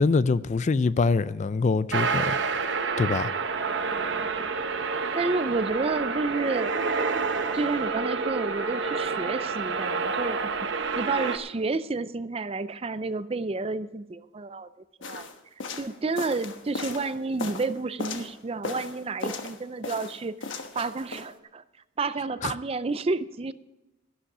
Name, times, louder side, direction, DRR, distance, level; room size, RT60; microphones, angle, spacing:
voice 1, 0.0-2.4 3.0-3.3 22.4-22.5, left 4 dB, 40° left, 0.4 m, -24 dB
sound 1, 1.9-11.4, right 4 dB, 65° right, 0.9 m, -28 dB
voice 2, 5.1-6.7 7.5-14.7 15.1-15.3 15.8-21.6 22.0-23.5, right 3 dB, 30° right, 0.5 m, -30 dB
sound 2, 15.0-18.3 18.6-19.6 19.8-21.3, left 3 dB, 80° left, 1.2 m, -36 dB
12.5 x 11.5 x 4.9 m
head